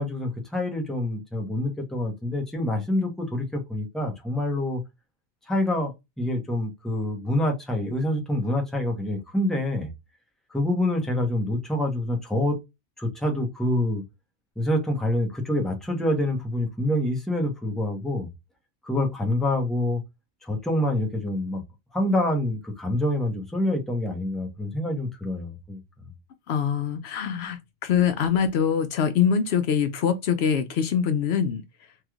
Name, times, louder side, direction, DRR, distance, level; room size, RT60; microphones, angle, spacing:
voice 1, 0.0-4.8 5.5-9.9 10.5-12.6 13.0-14.0 14.6-18.3 18.8-20.0 20.4-21.6 21.9-25.8, left 1 dB, ahead, 0.9 m, -26 dB
voice 2, 26.5-31.6, left 7 dB, 75° left, 0.8 m, -24 dB
3.2 x 3.0 x 2.4 m
omnidirectional pair, 1.1 m